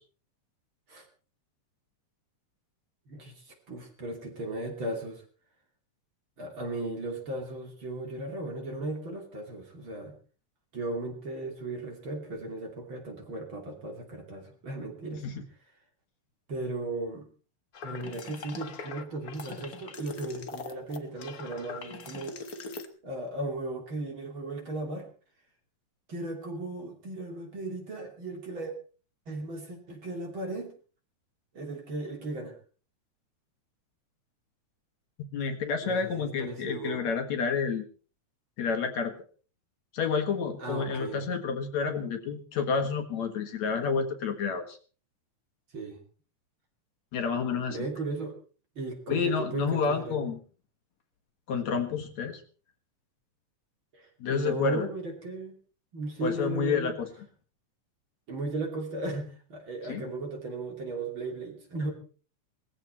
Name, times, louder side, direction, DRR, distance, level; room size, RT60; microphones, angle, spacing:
voice 1, 3.1-5.2 6.4-10.2 10.7-15.2 16.5-17.3 17.8-22.6 23.0-25.1 26.1-28.7 29.3-30.7 31.5-32.5 35.8-37.1 40.6-41.2 45.7-46.0 47.7-48.4 48.8-50.3 53.9-55.6 55.9-57.0 58.3-61.9, right 2 dB, 40° right, 3 dB, 3.5 m, -36 dB
sound 1, 17.7-22.9, left 4 dB, 45° left, 1.2 m, -41 dB
voice 2, 35.3-37.8 38.6-39.1 39.9-44.8 47.1-47.8 49.1-50.4 51.5-52.4 54.2-54.9 56.2-57.1 59.9-60.0, left 5 dB, 60° left, 5 dB, 2.8 m, -29 dB
19.5 x 15.0 x 4.3 m, 0.39 s
omnidirectional pair, 3.6 m